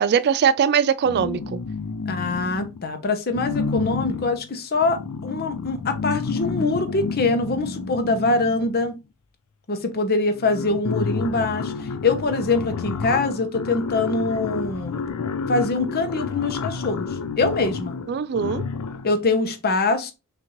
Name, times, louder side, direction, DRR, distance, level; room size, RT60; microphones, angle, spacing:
voice 1, 0.0-1.6 18.1-18.6, right 7 dB, 45° right, 0.3 m, -21 dB
sound 1, 1.0-2.9 3.3-9.0 9.9-10.0 10.3-19.2, left 4 dB, 85° left, 0.5 m, -30 dB
voice 2, 2.1-8.9 9.7-15.0 15.5-17.1 17.4-17.9 19.0-20.1, left 3 dB, 45° left, 0.8 m, -24 dB
6.1 x 2.6 x 2.9 m
head